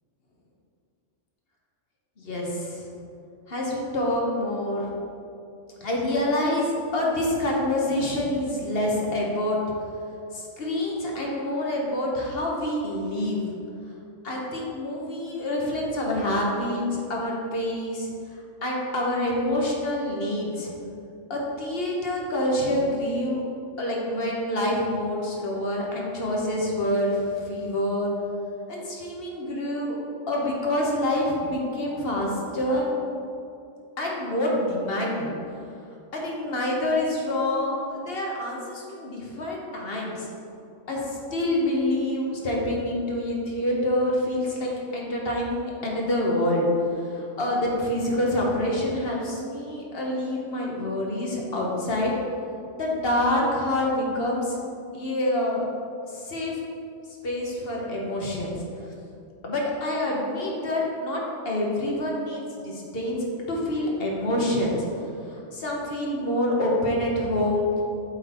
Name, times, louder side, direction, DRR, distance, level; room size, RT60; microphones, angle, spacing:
voice 1, 2.2-2.9 3.5-4.9 5.8-9.6 10.3-13.4 14.2-18.1 18.6-20.7 21.3-23.4 23.8-28.1 28.7-30.0 30.3-32.9 34.0-35.3 36.1-40.3 40.9-41.0 41.3-46.7 47.1-52.1 52.7-54.6 54.9-55.7 56.1-56.6 57.2-58.5 59.4-67.8, left 1 dB, 55° left, -2 dB, 1.3 m, -27 dB
7.7 x 3.9 x 4.3 m, 2.6 s
omnidirectional pair, 1.2 m